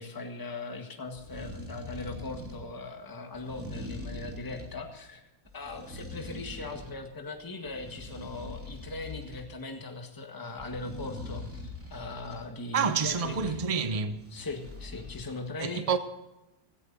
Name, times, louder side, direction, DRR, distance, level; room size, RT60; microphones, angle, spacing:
voice 1, 0.0-5.2 5.5-13.6 14.3-16.0, left 3 dB, 10° left, 1.6 m, -39 dB
sound 1, 1.1-2.6 3.3-4.8 5.4-7.0 7.4-9.4 10.6-12.4 13.1-13.6 14.1-15.2, left 2 dB, 5° right, 3.1 m, -42 dB
voice 2, 12.7-14.3 15.6-16.0, right 6 dB, 35° right, 0.5 m, -28 dB
17.5 x 14.5 x 4.1 m
omnidirectional pair, 2.1 m